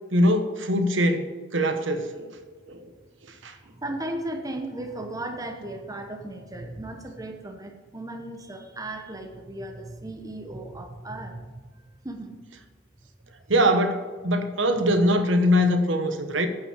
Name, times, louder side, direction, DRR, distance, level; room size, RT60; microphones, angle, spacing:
voice 1, 0.1-2.4 2.7-2.9 3.4-3.5 13.5-16.5, equal, 65° right, 7 dB, 1.0 m, -22 dB
voice 2, 3.7-12.3 13.2-13.3, right 1 dB, 15° right, 4 dB, 0.9 m, -36 dB
9.0 x 5.9 x 8.1 m, 1.5 s
head